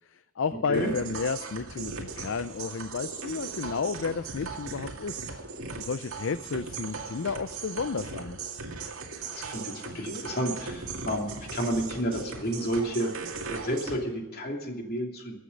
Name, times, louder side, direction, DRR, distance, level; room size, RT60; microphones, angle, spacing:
voice 1, 0.1-5.5 5.7-8.4, left 5 dB, 65° left, 13 dB, 0.5 m, -32 dB
sound 1, 0.7-14.0, right 4 dB, 80° right, 2.2 m, -38 dB
voice 2, 9.2-13.1 13.5-15.4, equal, 45° left, 2 dB, 2.8 m, -31 dB
22.5 x 8.4 x 5.3 m, 1.1 s
head